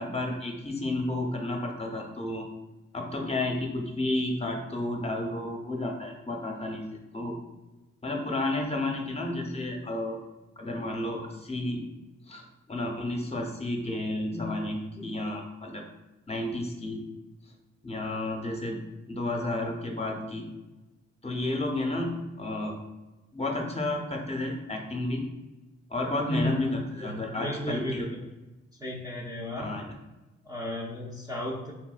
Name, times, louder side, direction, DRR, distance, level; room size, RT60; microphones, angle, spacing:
voice 1, 0.0-2.5 2.9-7.4 8.0-10.2 10.6-11.8 12.3-15.8 16.3-17.0 17.8-18.8 19.1-20.5 21.2-22.8 23.3-25.2 25.9-28.1 29.6-29.8, left 2 dB, 20° left, 2 dB, 0.8 m, -31 dB
voice 2, 26.3-26.7 27.0-28.1 28.8-29.7 30.4-31.7, left 1 dB, 10° right, -4 dB, 0.6 m, -33 dB
3.5 x 2.6 x 2.4 m, 1.1 s
supercardioid pair, 50°, 30 cm